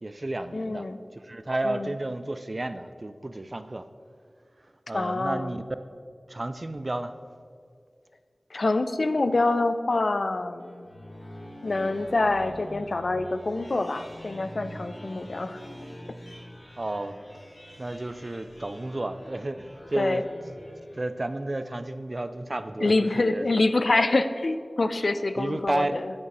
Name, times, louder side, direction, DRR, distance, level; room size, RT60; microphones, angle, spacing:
voice 1, 0.0-0.9 1.1-3.9 4.9-5.6 6.3-7.1 16.8-17.2 17.8-20.2 21.0-23.5 25.4-26.0, right 2 dB, 45° right, 11 dB, 0.4 m, -32 dB
voice 2, 0.5-1.0 1.6-2.0 4.9-5.6 8.5-10.9 11.6-15.6 20.0-20.2 22.8-26.1, left 2 dB, 75° left, 11 dB, 0.3 m, -26 dB
sound 1, 10.6-21.4, equal, 55° left, 1.5 m, -45 dB
8.7 x 4.1 x 5.3 m, 2.1 s
wide cardioid pair, 55°, 0 cm